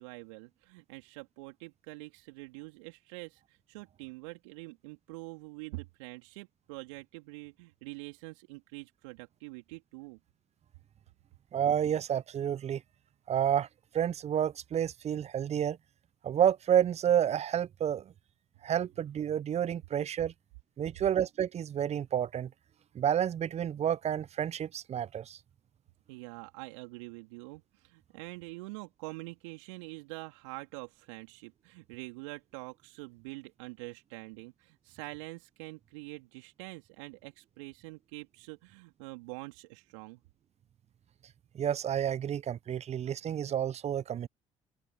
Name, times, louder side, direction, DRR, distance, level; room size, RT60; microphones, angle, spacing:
voice 1, 0.0-10.2 26.1-40.2, right 26 dB, 75° right, 3.7 m, -45 dB
voice 2, 11.5-12.8 13.3-13.7 13.9-15.8 16.2-18.1 18.6-20.3 20.8-22.5 22.9-25.4 41.5-44.3, right 9 dB, 45° right, 0.9 m, -30 dB
open air
figure-of-eight pair, 55°, 16 cm